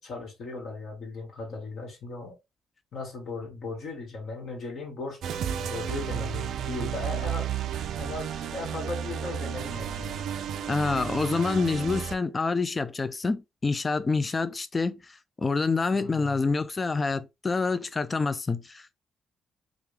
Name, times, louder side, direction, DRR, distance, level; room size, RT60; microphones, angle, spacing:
voice 1, 0.0-2.4 2.9-7.5 8.0-10.2 15.9-16.4, left 3 dB, 65° left, 1.7 m, -37 dB
sound 1, 5.2-12.2, right 9 dB, 70° right, 0.4 m, -32 dB
voice 2, 10.7-19.0, left 4 dB, 30° left, 0.3 m, -27 dB
3.4 x 2.4 x 3.2 m
cardioid pair, 90°, 0 cm